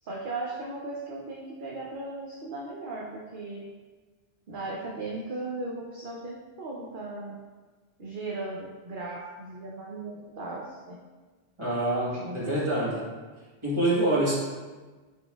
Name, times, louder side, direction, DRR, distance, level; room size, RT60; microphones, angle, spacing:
voice 1, 0.0-3.6 4.5-7.4 8.0-11.0 12.1-12.5 12.8-13.0, right 2 dB, 55° right, -3 dB, 0.7 m, -37 dB
voice 2, 11.6-13.0 13.6-14.3, right 1 dB, 25° right, -7 dB, 1.3 m, -26 dB
5.6 x 4.1 x 2.3 m, 1.3 s
omnidirectional pair, 1.1 m